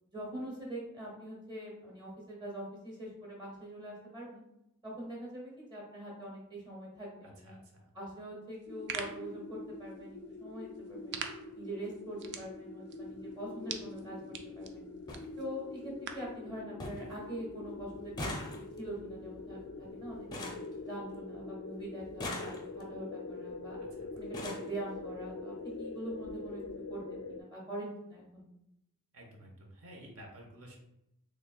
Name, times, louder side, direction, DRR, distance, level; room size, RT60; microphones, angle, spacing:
voice 1, 0.1-4.4 4.8-7.6 7.9-11.2 11.5-14.9 15.4-20.5 20.8-23.8 24.1-26.6 26.9-28.5, right 1 dB, 20° right, -4 dB, 1.3 m, -44 dB
voice 2, 7.2-7.9 23.8-24.1 29.1-30.8, right 1 dB, 70° right, 1 dB, 0.9 m, -52 dB
sound 1, 8.5-16.4, right 6 dB, 50° right, 0.4 m, -46 dB
sound 2, 8.7-27.4, left 3 dB, 75° left, 0.3 m, -44 dB
sound 3, 12.9-13.1 14.4-14.5 14.7-14.8 15.1-15.3 15.7-16.2 16.5-16.6 16.8-17.2 17.4-21.4 22.0-23.0 23.8-23.9 24.2-24.8 25.7-25.8 26.1-26.3 26.6-26.7, left 1 dB, 20° left, 0.5 m, -43 dB
4.0 x 3.2 x 2.3 m, 0.83 s
head